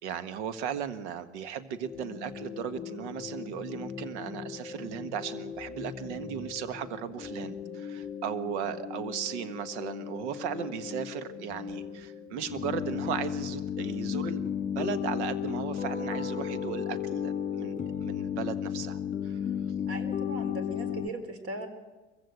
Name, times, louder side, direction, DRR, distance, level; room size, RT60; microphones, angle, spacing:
voice 1, 0.0-17.7 18.0-19.4, right 8 dB, 65° right, 13 dB, 1.6 m, -36 dB
sound 1, 1.8-21.1, left 8 dB, 20° left, 2.0 m, -35 dB
voice 2, 19.9-21.7, right 2 dB, 40° right, 9 dB, 3.9 m, -39 dB
22.0 x 15.5 x 8.4 m, 1.2 s
hypercardioid pair, 80°, 37 cm